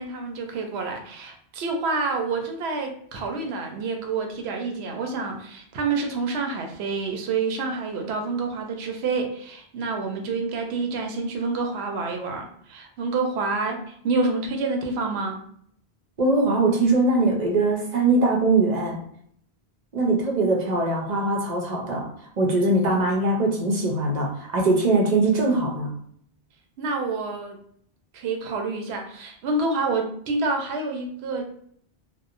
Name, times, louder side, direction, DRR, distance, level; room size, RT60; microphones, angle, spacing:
voice 1, 0.0-15.4 26.8-27.6 28.1-31.4, right 3 dB, 80° right, 3 dB, 0.8 m, -28 dB
voice 2, 16.2-19.0 19.9-22.1 22.4-25.9, right 2 dB, 50° right, 0 dB, 0.6 m, -21 dB
2.8 x 2.0 x 2.4 m, 0.65 s
omnidirectional pair, 1.1 m